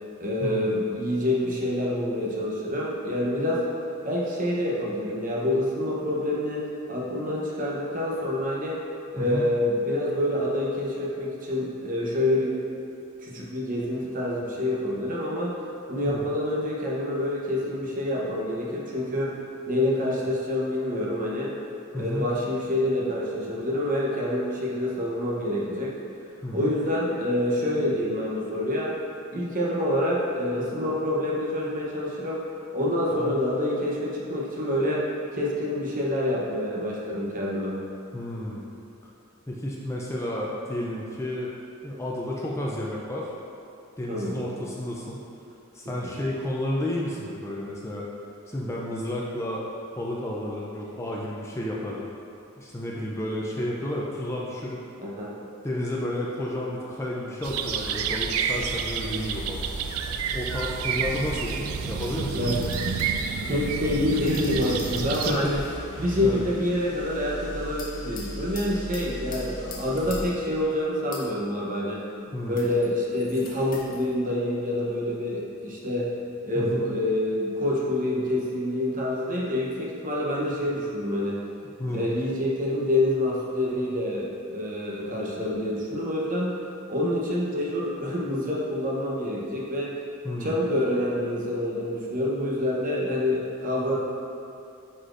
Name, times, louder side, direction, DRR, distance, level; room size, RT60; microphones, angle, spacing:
voice 1, 0.2-3.7 4.0-8.8 9.1-12.6 13.2-15.6 15.9-19.4 19.7-21.5 21.9-26.0 26.5-29.0 29.3-32.5 32.7-35.1 35.3-37.8 44.1-44.4 46.0-46.1 55.0-55.3 62.3-62.6 63.5-65.6 66.0-72.0 72.5-76.1 76.4-81.4 81.9-86.6 86.9-89.9 90.4-94.0, left 1 dB, 40° right, -4 dB, 0.9 m, -27 dB
voice 2, 21.9-22.3 26.4-26.7 33.2-33.3 38.1-38.7 39.5-41.5 41.8-43.3 44.0-45.2 45.7-48.1 48.5-49.6 50.0-52.0 52.6-54.8 55.6-59.7 60.3-62.7 65.0-65.6 66.2-66.4 70.0-70.1 72.3-72.6 76.6-76.9 81.8-82.1 90.2-90.5, left 1 dB, 15° left, -4 dB, 0.5 m, -31 dB
sound 1, 57.4-65.3, right 6 dB, 75° right, 0.4 m, -29 dB
sound 2, 59.4-59.5 60.6-61.4 62.0-63.3 64.1-65.8 67.8-70.5 71.1-71.5 72.6-72.8 73.7-73.9, left 4 dB, 40° left, 0.8 m, -43 dB
sound 3, 60.6-60.7 61.1-62.6 62.9-70.7 72.2-72.9 73.1-74.1, equal, 85° left, 1.4 m, -40 dB
9.5 x 4.2 x 2.6 m, 2.7 s
head